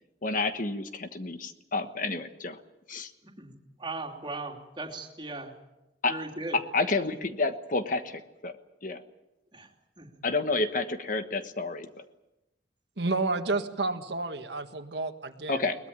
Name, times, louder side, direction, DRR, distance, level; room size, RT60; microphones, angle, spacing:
voice 1, 0.2-2.6 2.9-3.1 6.0-6.2 6.5-8.6 8.8-9.0 10.2-12.0 15.5-15.8, left 3 dB, 50° left, 9 dB, 1.3 m, -30 dB
voice 2, 3.2-5.5 6.1-6.6 9.5-9.7 10.0-10.1, right 2 dB, 25° right, 2 dB, 3.0 m, -38 dB
voice 3, 13.0-15.6, right 3 dB, 70° right, 6 dB, 1.7 m, -30 dB
22.0 x 20.0 x 8.9 m, 0.95 s
head